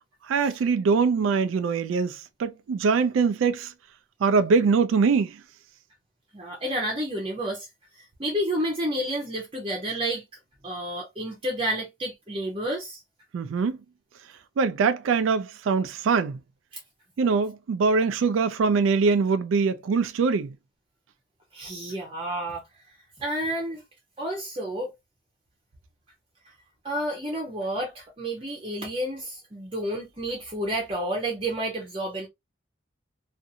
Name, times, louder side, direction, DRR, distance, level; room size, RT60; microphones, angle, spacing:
voice 1, 0.2-3.7 4.2-5.4 13.3-13.8 14.6-16.4 17.2-20.5, right 5 dB, 90° right, 0.3 m, -23 dB
voice 2, 6.3-7.7 8.0-10.2 10.6-13.0 16.7-16.8 21.5-22.6 23.2-23.8 24.2-24.9 26.5-26.6 26.8-32.3, right 1 dB, 30° right, 0.7 m, -30 dB
2.6 x 2.5 x 2.6 m
head